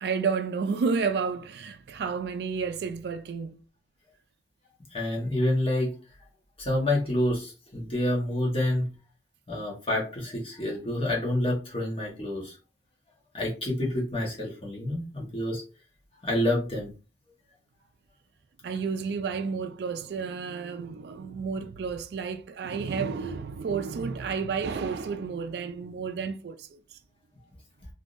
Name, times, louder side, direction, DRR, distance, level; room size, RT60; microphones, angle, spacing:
voice 1, 0.0-3.6 18.6-27.0, right 5 dB, 65° right, 0.3 m, -31 dB
voice 2, 4.9-5.9 6.6-8.9 9.5-12.5 13.3-15.6 16.2-16.9, left 1 dB, 30° left, 1.1 m, -28 dB
3.5 x 2.6 x 2.5 m
head